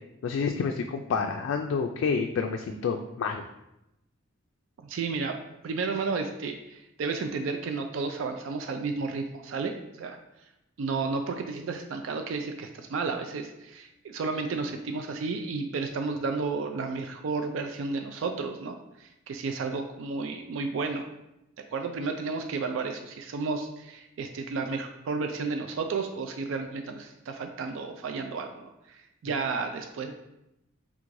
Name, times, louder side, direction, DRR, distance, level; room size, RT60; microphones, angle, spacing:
voice 1, 0.2-3.4, left 5 dB, 80° left, 3 dB, 0.3 m, -29 dB
voice 2, 4.8-5.4 5.6-10.2 10.8-21.1 21.7-30.1, right 4 dB, 85° right, 5 dB, 0.3 m, -32 dB
3.6 x 2.5 x 4.5 m, 0.89 s
head